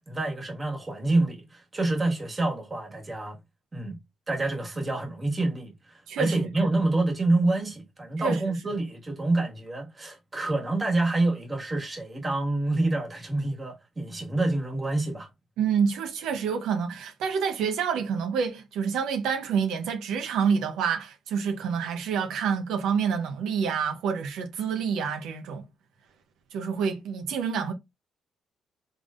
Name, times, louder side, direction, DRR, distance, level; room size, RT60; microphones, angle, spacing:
voice 1, 0.0-3.4 3.7-4.0 4.3-15.3, right 2 dB, 25° right, 1.7 m, -27 dB
voice 2, 6.1-6.7 8.2-8.4 15.6-25.7 26.5-27.7, right 6 dB, 85° right, 0.8 m, -28 dB
3.7 x 3.4 x 2.5 m
cardioid pair, 90°, 0 cm